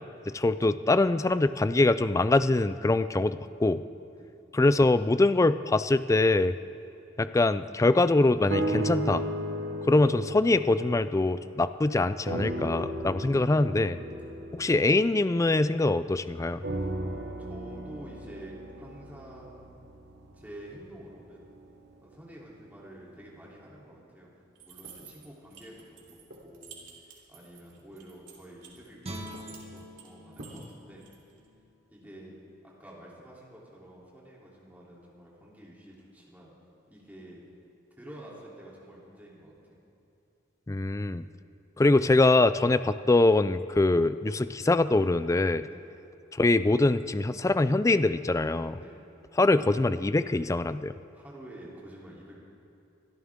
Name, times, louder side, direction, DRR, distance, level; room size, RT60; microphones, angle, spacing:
voice 1, 0.3-3.8 4.5-6.6 7.2-9.2 9.9-14.0 14.6-16.6 40.7-41.2 41.8-45.7 46.3-48.8 49.4-50.9, left 2 dB, 15° left, 13 dB, 0.3 m, -23 dB
sound 1, 8.5-11.9 12.3-16.0 16.6-20.8 21.5-21.6, right 1 dB, 60° right, 1.0 m, -35 dB
voice 2, 16.7-19.7 20.3-21.5 22.0-24.3 24.6-26.2 26.4-31.0 31.9-32.3 32.6-36.5 36.9-37.4 37.9-39.8 45.7-45.8 48.8-49.0 51.1-52.3, right 1 dB, 10° right, -5 dB, 3.2 m, -49 dB
sound 2, 24.6-31.5, right 4 dB, 85° right, 2.8 m, -49 dB
Guitar, 29.0-32.2 32.6-32.7, equal, 35° right, 1.8 m, -45 dB
24.0 x 13.0 x 3.7 m, 2.8 s
head